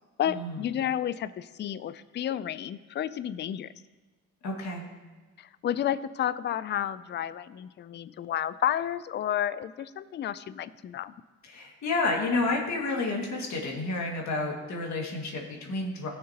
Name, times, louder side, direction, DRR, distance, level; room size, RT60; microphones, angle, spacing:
voice 1, 0.2-3.7 5.4-11.1, left 10 dB, 35° left, 16 dB, 0.4 m, -31 dB
voice 2, 4.4-4.8 11.4-16.1, left 3 dB, 65° left, 0 dB, 2.1 m, -30 dB
18.0 x 6.5 x 2.9 m, 1.3 s
cardioid pair, 90°, 30 cm